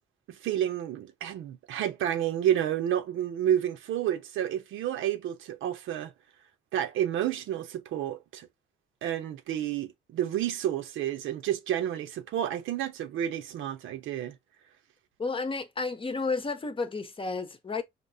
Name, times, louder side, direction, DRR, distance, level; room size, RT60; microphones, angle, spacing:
voice 1, 0.4-6.1 6.7-8.5 9.0-14.4, right 11 dB, 85° right, 0.8 m, -30 dB
voice 2, 15.2-17.8, left 4 dB, 25° left, 0.8 m, -32 dB
5.1 x 2.8 x 2.7 m
cardioid pair, 90°, 20 cm